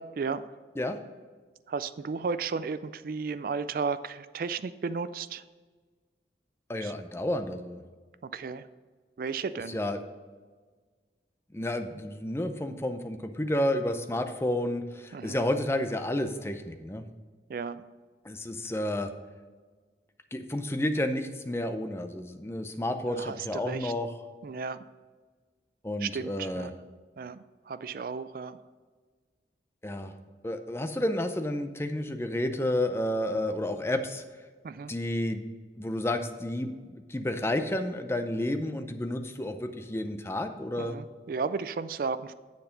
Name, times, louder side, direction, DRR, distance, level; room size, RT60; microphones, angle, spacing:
voice 1, 0.2-0.5 1.7-5.4 6.8-6.9 8.2-8.7 9.2-9.8 15.1-15.4 17.5-17.8 23.1-23.9 24.4-24.8 26.0-26.7 27.2-28.6 34.6-34.9 40.8-42.3, right 5 dB, 50° right, 13 dB, 0.3 m, -34 dB
voice 2, 6.7-7.8 9.7-10.0 11.5-17.0 18.2-19.1 20.3-24.1 25.8-26.7 29.8-30.1 30.4-34.2 34.9-35.4 35.8-41.0, left 1 dB, 15° left, 7 dB, 0.5 m, -31 dB
7.8 x 6.9 x 5.2 m, 1.5 s
head